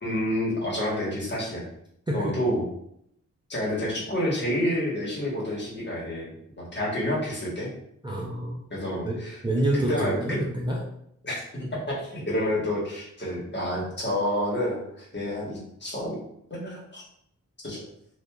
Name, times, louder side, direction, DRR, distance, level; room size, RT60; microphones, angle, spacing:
voice 1, 0.0-1.6 2.1-2.7 3.5-7.7 8.7-9.4 9.7-10.4 11.2-11.4 11.9-16.2 16.5-17.0 17.6-17.8, left 1 dB, 35° left, -4 dB, 1.2 m, -29 dB
voice 2, 8.0-8.6 9.0-9.2 9.4-10.8, right 1 dB, 15° right, -4 dB, 0.5 m, -27 dB
2.7 x 2.4 x 2.3 m, 0.72 s
cardioid pair, 70°, 30 cm